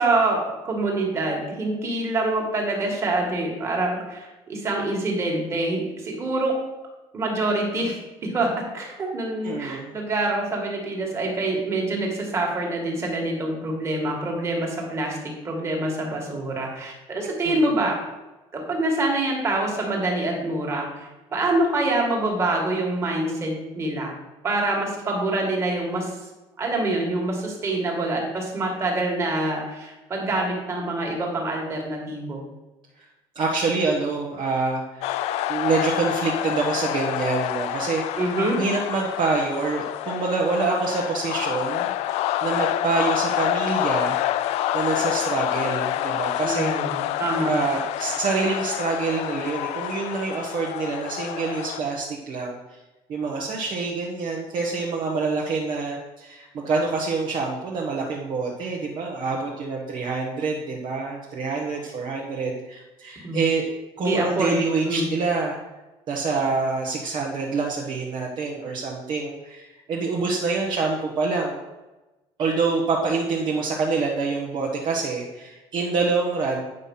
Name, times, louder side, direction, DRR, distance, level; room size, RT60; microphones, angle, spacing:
voice 1, 0.0-6.6 7.1-8.5 8.7-18.0 18.5-24.2 24.4-26.1 26.6-32.4 38.2-38.6 46.4-47.5 63.2-63.5 64.0-65.1, right 2 dB, 25° right, 0 dB, 2.1 m, -26 dB
voice 2, 9.4-10.0 17.4-17.7 33.0-33.1 33.3-35.0 35.5-38.2 38.6-44.2 44.5-46.7 47.4-52.6 53.1-63.6 64.0-65.6 66.1-71.6 72.4-76.6, right 4 dB, 40° right, -2 dB, 1.3 m, -26 dB
sound 1, 35.0-51.8, left 13 dB, 65° left, 0.4 m, -27 dB
9.4 x 5.8 x 5.6 m, 1.1 s
cardioid pair, 170°, 12 cm